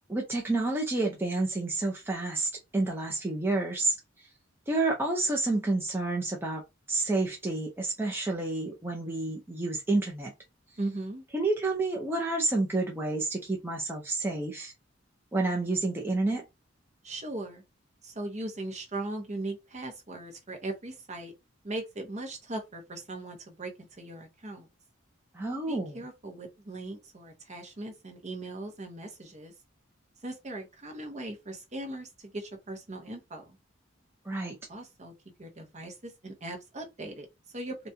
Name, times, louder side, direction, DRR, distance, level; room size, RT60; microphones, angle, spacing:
voice 1, 0.1-4.3 4.7-6.6 6.9-10.3 11.3-14.7 15.3-16.4 25.3-26.0 34.2-34.6, right 2 dB, 10° right, 0.6 m, -29 dB
voice 2, 10.8-11.2 17.0-17.6 18.0-21.3 21.6-24.7 25.7-29.5 30.2-33.6 34.7-35.1 35.4-37.8, right 2 dB, 35° right, 0.9 m, -39 dB
4.1 x 2.2 x 2.7 m
head